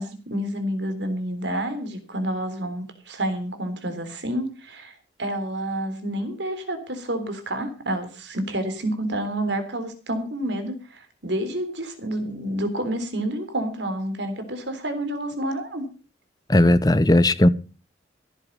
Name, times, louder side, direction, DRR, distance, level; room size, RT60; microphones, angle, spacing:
voice 1, 0.0-15.9, right 1 dB, 80° right, 3.6 m, -29 dB
voice 2, 16.5-17.5, left 1 dB, 20° left, 0.8 m, -16 dB
15.5 x 10.5 x 5.4 m
head